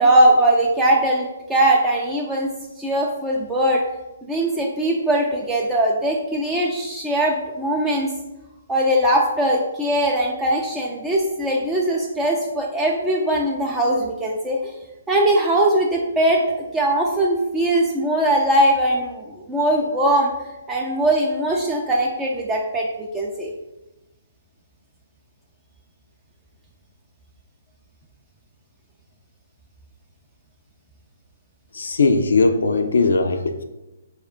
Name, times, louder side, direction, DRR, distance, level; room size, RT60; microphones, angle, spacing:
voice 1, 0.0-2.5 2.8-3.8 4.3-8.1 8.7-14.7 15.1-16.4 16.7-20.3 20.7-23.5, right 1 dB, 10° right, -3 dB, 0.3 m, -20 dB
voice 2, 31.7-33.6, left 3 dB, 65° left, 7 dB, 0.4 m, -19 dB
4.1 x 2.2 x 3.6 m, 1.0 s
figure-of-eight pair, 130°, 0 cm